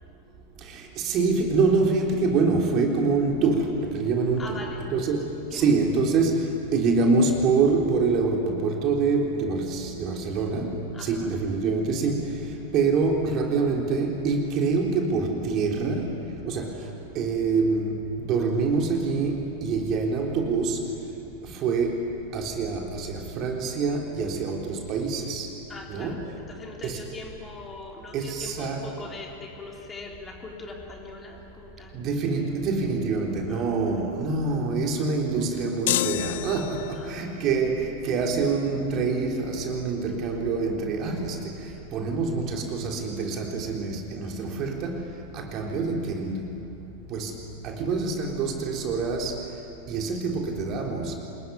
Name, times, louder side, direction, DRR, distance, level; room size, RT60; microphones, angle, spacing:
voice 1, 0.7-4.6 4.9-12.3 12.7-16.2 16.5-16.7 17.2-20.8 21.5-22.0 22.3-25.5 25.9-26.2 26.8-27.0 28.1-28.9 31.9-41.5 41.9-45.0 45.3-46.6 47.1-47.3 47.6-49.4 49.9-51.2, right 4 dB, 35° right, 1 dB, 3.7 m, -25 dB
voice 2, 4.4-4.9 5.5-5.7 10.9-11.3 25.2-25.4 25.7-32.0 33.5-33.8 36.9-37.4 45.3-45.4, left 3 dB, 20° left, 0 dB, 3.7 m, -41 dB
sound 1, 35.9-37.2, left 14 dB, 55° left, 0.6 m, -28 dB
27.5 x 21.0 x 9.5 m, 2.6 s
figure-of-eight pair, 90°, 0 cm